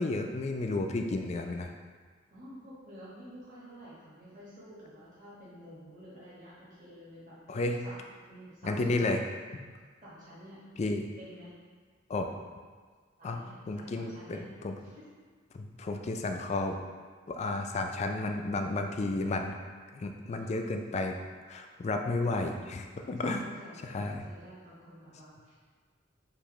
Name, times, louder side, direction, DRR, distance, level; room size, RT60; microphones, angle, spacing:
voice 1, 0.0-1.7 7.5-7.8 8.6-9.2 10.8-11.0 12.1-12.3 13.2-13.4 13.7-14.4 14.6-14.7 15.5-16.8 17.3-19.5 19.9-21.2 21.5-23.4 23.8-24.2, left 2 dB, 35° left, 4 dB, 0.3 m, -32 dB
voice 2, 2.3-8.0 8.3-9.1 10.0-10.6 11.2-11.5 12.2-12.3 13.2-14.4 14.8-15.1 20.4-20.6 22.0-22.7 23.0-25.5, equal, 40° right, -9 dB, 1.4 m, -50 dB
6.9 x 2.6 x 3.0 m, 1.5 s
head